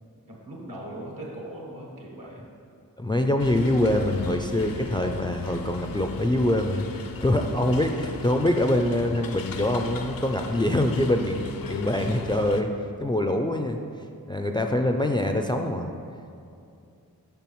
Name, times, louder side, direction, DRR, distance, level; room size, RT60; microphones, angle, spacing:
voice 1, 0.3-2.5 7.3-7.6 14.7-15.0, right 1 dB, 70° right, -2 dB, 1.4 m, -40 dB
voice 2, 3.0-12.7 13.0-13.8 14.3-15.9, left 1 dB, 15° left, 4 dB, 0.3 m, -24 dB
sound 1, 3.4-12.6, left 5 dB, 70° left, 0.5 m, -38 dB
7.0 x 5.4 x 3.0 m, 2.6 s
wide cardioid pair, 45°, 35 cm